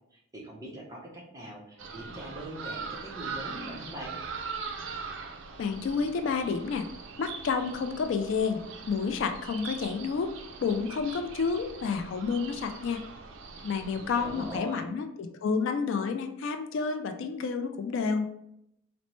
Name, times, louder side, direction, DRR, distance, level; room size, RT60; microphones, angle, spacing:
voice 1, 0.1-4.2 13.9-14.9, right 1 dB, 15° right, -3 dB, 0.7 m, -42 dB
sound 1, 1.8-14.6, right 5 dB, 65° right, 0.4 m, -41 dB
voice 2, 5.6-6.9 7.2-8.6 8.9-10.3 10.6-13.0 13.6-18.2, left 5 dB, 60° left, 6 dB, 0.3 m, -30 dB
4.1 x 2.1 x 3.0 m, 0.78 s
head